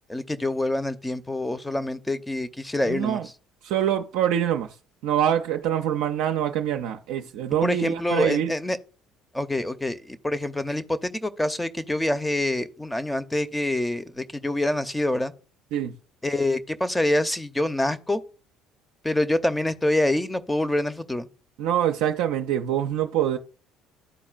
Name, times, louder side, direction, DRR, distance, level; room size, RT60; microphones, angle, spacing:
voice 1, 0.1-3.2 7.6-8.8 9.3-15.3 16.2-18.2 19.0-21.3, left 1 dB, 10° left, 0.7 m, -26 dB
voice 2, 2.9-3.3 3.6-4.7 5.0-8.5 15.7-15.9 21.6-23.4, right 10 dB, 75° right, 0.4 m, -25 dB
12.5 x 4.2 x 2.4 m
hypercardioid pair, 65°, 0 cm